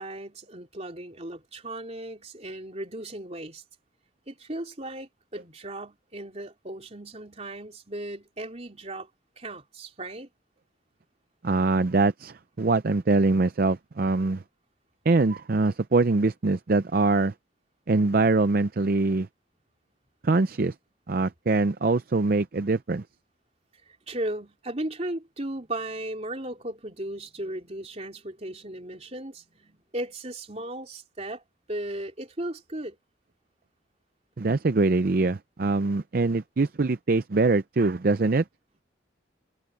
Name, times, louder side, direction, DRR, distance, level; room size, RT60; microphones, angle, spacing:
voice 1, 0.0-3.6 4.3-9.1 9.4-10.3 24.1-31.4 31.7-33.0, right 1 dB, 35° right, 3.7 m, -36 dB
voice 2, 11.4-14.4 15.1-17.3 17.9-19.3 20.2-20.7 21.1-23.0 34.4-38.4, right 3 dB, 50° right, 0.5 m, -23 dB
head